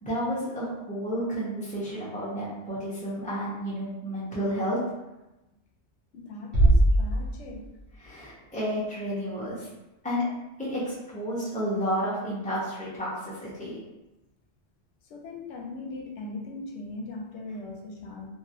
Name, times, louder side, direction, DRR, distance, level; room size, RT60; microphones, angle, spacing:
voice 1, 0.0-4.8 8.0-9.7 10.0-10.2 10.6-13.8, equal, 10° left, -8 dB, 0.8 m, -31 dB
voice 2, 6.1-7.7 15.1-18.3, left 2 dB, 80° left, 1 dB, 0.9 m, -39 dB
Bass drum, 6.5-8.0, right 1 dB, 55° right, 1.1 m, -21 dB
2.9 x 2.6 x 2.6 m, 1.0 s
omnidirectional pair, 1.2 m